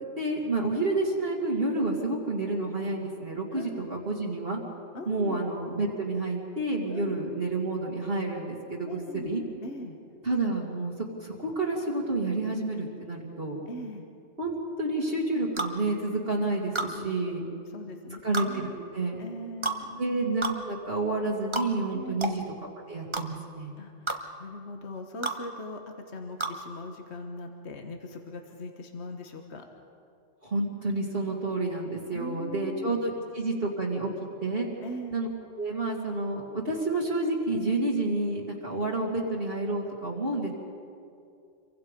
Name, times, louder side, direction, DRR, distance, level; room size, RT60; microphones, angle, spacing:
voice 1, 0.0-4.6 5.1-9.4 10.2-10.9 11.2-13.6 14.4-17.4 18.2-19.2 20.0-22.4 22.9-23.7 30.4-34.1 34.4-34.7 35.1-35.3 35.6-40.5, right 2 dB, 50° right, -3 dB, 2.5 m, -29 dB
voice 2, 3.5-3.9 4.9-5.4 6.9-7.1 8.9-9.3 9.6-10.0 13.7-14.1 16.8-17.1 17.4-18.8 19.2-20.0 21.9-22.2 23.8-29.6 32.1-32.9 34.8-35.1, left 1 dB, 60° left, 4 dB, 1.7 m, -40 dB
sound 1, 15.6-15.8 16.8-16.9 18.3-18.5 19.6-19.8 20.4-20.6 21.5-21.7 22.2-22.4 23.1-23.3 24.1-24.2 25.2-25.4 26.4-26.6, right 3 dB, 25° right, 1.3 m, -30 dB
27.5 x 23.5 x 5.3 m, 2.5 s
omnidirectional pair, 1.3 m